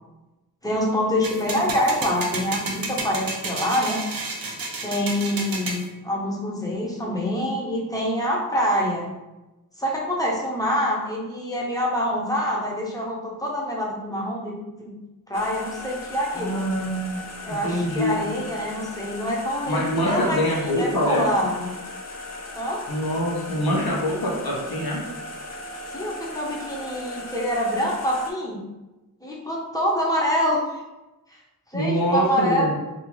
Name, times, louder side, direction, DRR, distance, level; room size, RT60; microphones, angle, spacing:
voice 1, 0.6-4.0 4.8-9.1 9.8-14.9 15.3-16.7 17.4-21.7 22.5-22.8 25.9-28.6 29.2-30.6 31.3-31.4 31.7-32.7, equal, 10° left, -4 dB, 0.7 m, -26 dB
sound 1, 1.2-5.8, right 3 dB, 70° right, 0.6 m, -31 dB
sound 2, 15.3-28.3, left 2 dB, 45° left, 0.5 m, -38 dB
voice 2, 16.4-17.2 17.6-18.2 19.7-21.2 22.9-25.0 31.7-32.7, equal, 75° left, -4 dB, 0.9 m, -24 dB
2.7 x 2.4 x 3.0 m, 1.0 s
wide cardioid pair, 65°, 36 cm